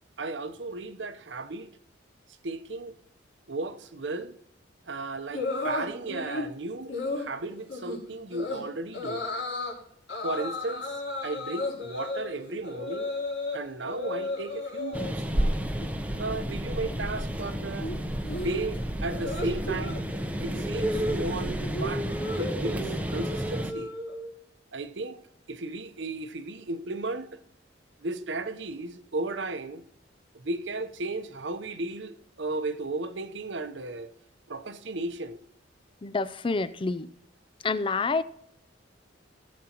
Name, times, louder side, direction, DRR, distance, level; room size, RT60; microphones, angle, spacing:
voice 1, 0.2-1.7 2.4-2.9 3.5-4.4 4.9-9.2 10.2-13.1 13.5-15.6 16.2-17.9 18.3-20.0 20.4-22.1 22.3-23.9 24.7-25.2 25.5-27.4 28.0-29.8 30.3-34.1 34.5-35.4, right 2 dB, 70° right, 0.8 m, -35 dB
sound 1, 5.3-6.5 6.9-7.3 7.7-8.0 8.3-8.6 8.9-9.7 10.1-13.6 13.8-15.1 15.5-15.9 16.1-24.3, left 2 dB, 80° left, 4.0 m, -34 dB
sound 2, 14.9-23.7, equal, 10° right, 0.7 m, -31 dB
voice 2, 36.0-37.1 37.6-38.2, left 3 dB, 25° left, 0.4 m, -28 dB
18.0 x 7.6 x 3.0 m
head